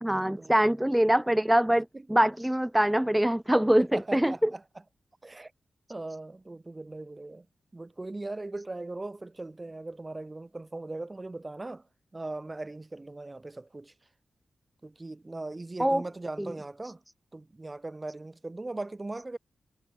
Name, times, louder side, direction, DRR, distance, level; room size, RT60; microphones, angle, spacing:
voice 1, 0.0-4.5 15.8-16.0 16.4-16.5, right 1 dB, 5° right, 1.0 m, -24 dB
voice 2, 3.8-4.6 5.2-5.5 5.9-7.4 7.7-11.8 12.1-13.9 14.8-17.0 17.3-19.4, right 2 dB, 20° right, 6.9 m, -39 dB
wide cardioid pair, 115°, 0 cm